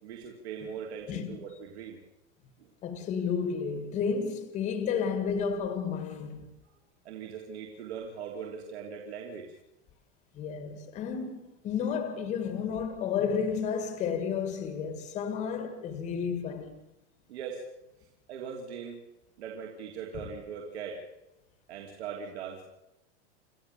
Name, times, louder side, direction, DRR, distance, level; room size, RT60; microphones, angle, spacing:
voice 1, 0.0-2.0 2.6-2.7 6.6-6.7 7.0-9.5 17.3-17.6 18.3-19.0 19.4-21.0 21.7-22.6, right 6 dB, 60° right, 3.3 m, -40 dB
voice 2, 2.8-6.5 10.3-16.8, left 6 dB, 20° left, 1.7 m, -32 dB
28.5 x 14.5 x 7.0 m
supercardioid pair, 175°, 36 cm